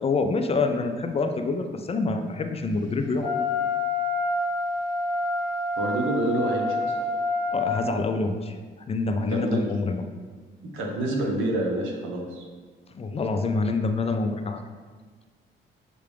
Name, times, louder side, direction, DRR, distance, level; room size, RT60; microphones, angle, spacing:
voice 1, 0.0-3.3 7.5-8.5 8.9-10.0 12.9-14.6, left 3 dB, 30° left, 6 dB, 0.4 m, -26 dB
Wind instrument woodwind instrument, 3.2-7.8, left 3 dB, 20° right, 1.1 m, -27 dB
voice 2, 5.8-6.9 9.2-9.6 10.6-12.4, right 1 dB, 90° right, 0 dB, 0.9 m, -27 dB
6.6 x 2.4 x 3.4 m, 1.5 s
cardioid pair, 90°, 20 cm